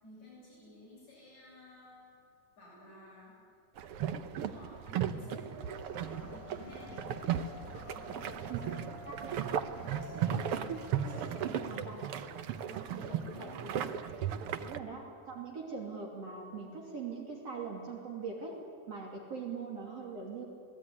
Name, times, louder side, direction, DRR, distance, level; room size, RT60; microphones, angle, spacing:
voice 1, 0.0-2.1 2.6-3.4 4.0-5.5 6.2-10.3 10.5-10.8 11.1-12.4 12.7-14.0 14.4-14.7, left 1 dB, 60° left, -6 dB, 9.1 m, -53 dB
sound 1, 3.8-14.8, right 9 dB, 70° right, 1.4 m, -36 dB
sound 2, 5.6-11.5, equal, 40° left, 6.9 m, -48 dB
voice 2, 11.6-12.0 13.4-13.7 14.5-18.6 18.9-20.5, right 5 dB, 50° right, 0 dB, 3.8 m, -41 dB
28.5 x 19.0 x 9.8 m, 2.4 s
omnidirectional pair, 3.7 m